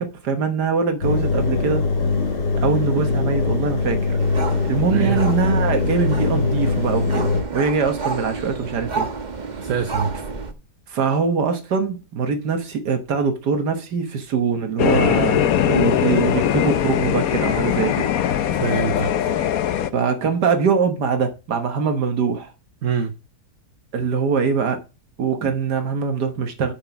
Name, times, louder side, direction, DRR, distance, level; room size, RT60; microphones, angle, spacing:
voice 1, 0.0-1.9 2.6-4.2 4.6-9.1 10.9-18.1 19.9-22.5 23.9-24.8 25.2-26.7, right 5 dB, 75° right, 1.8 m, -23 dB
Engine, 1.0-7.4, left 4 dB, 80° left, 3.2 m, -22 dB
sound 1, 4.2-10.5, right 4 dB, 30° right, 1.1 m, -30 dB
voice 2, 4.9-5.2 9.6-10.1 18.5-19.3 22.8-23.1, right 6 dB, 55° right, 1.1 m, -24 dB
sound 2, 14.8-19.9, left 9 dB, 65° left, 1.2 m, -20 dB
8.5 x 6.0 x 5.7 m
omnidirectional pair, 1.8 m